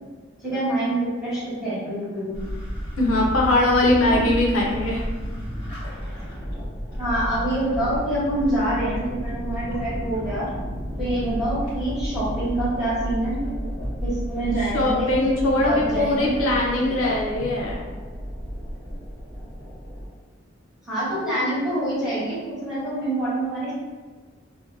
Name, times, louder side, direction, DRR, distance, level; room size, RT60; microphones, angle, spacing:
voice 1, 0.4-2.4 4.1-4.2 7.0-10.5 11.0-13.4 14.0-15.2 15.7-16.4 17.0-17.2 20.8-23.7, right 1 dB, 5° right, -13 dB, 1.2 m, -26 dB
sound 1, 2.3-20.1, equal, 25° left, 1.2 m, -32 dB
voice 2, 3.0-5.0 14.6-17.8, left 2 dB, 90° left, -3 dB, 0.6 m, -21 dB
2.6 x 2.1 x 2.6 m, 1.4 s
head